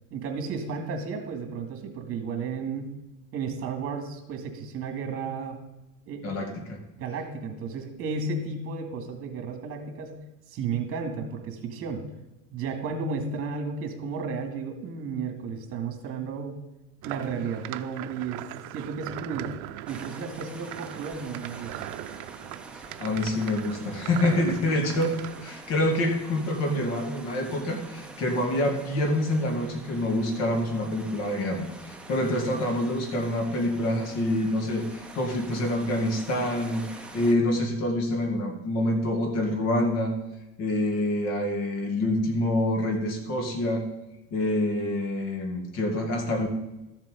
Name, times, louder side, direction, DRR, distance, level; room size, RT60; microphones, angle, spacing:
voice 1, 0.1-2.9 3.3-5.6 6.1-6.3 6.9-10.2 10.5-12.0 12.5-16.6 17.0-18.4 18.7-19.5 19.9-21.9, right 5 dB, 45° right, 5 dB, 2.2 m, -33 dB
voice 2, 6.2-6.8 23.0-40.1 40.6-43.9 44.3-46.5, left 1 dB, 55° left, 4 dB, 2.4 m, -26 dB
sound 1, 17.0-25.5, right 14 dB, 65° right, 0.6 m, -39 dB
sound 2, 19.9-37.3, right 2 dB, 5° right, 0.8 m, -46 dB
13.0 x 7.5 x 5.2 m, 0.99 s
cardioid pair, 150°, 31 cm